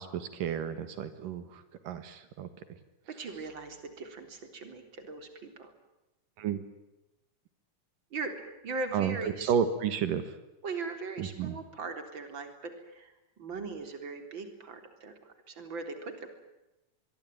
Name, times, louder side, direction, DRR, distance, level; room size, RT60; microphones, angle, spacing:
voice 1, 0.0-2.5 6.4-6.6 8.9-10.3 11.2-11.6, right 8 dB, 85° right, 11 dB, 3.2 m, -32 dB
voice 2, 3.1-5.7 8.1-8.3 8.6-9.5 10.6-13.1 13.4-16.3, right 3 dB, 35° right, 7 dB, 4.3 m, -39 dB
25.5 x 22.0 x 9.2 m, 0.98 s
omnidirectional pair, 3.8 m